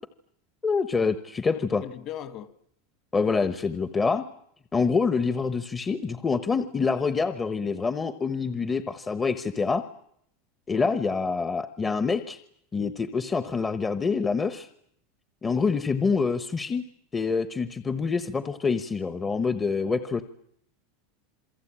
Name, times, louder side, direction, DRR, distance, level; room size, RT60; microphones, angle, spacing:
voice 1, 0.6-1.8 3.1-4.2 4.7-9.8 10.7-12.4 12.7-14.7 15.4-16.8 17.1-20.2, left 4 dB, 15° left, 1.0 m, -26 dB
voice 2, 1.5-2.5 10.7-10.9 15.6-15.7, left 11 dB, 40° left, 1.8 m, -39 dB
27.5 x 23.5 x 8.7 m
supercardioid pair, 150°, 0 cm